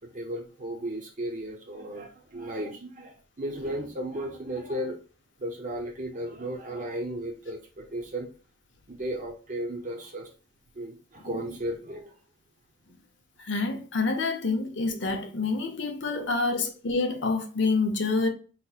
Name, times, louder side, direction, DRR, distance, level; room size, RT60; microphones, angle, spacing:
voice 1, 0.1-5.0 5.4-8.3 8.9-10.3 10.7-12.1 16.1-16.6, right 1 dB, 40° right, 0.7 m, -35 dB
voice 2, 13.4-18.3, left 3 dB, 65° left, 0.7 m, -27 dB
4.1 x 2.9 x 2.4 m
head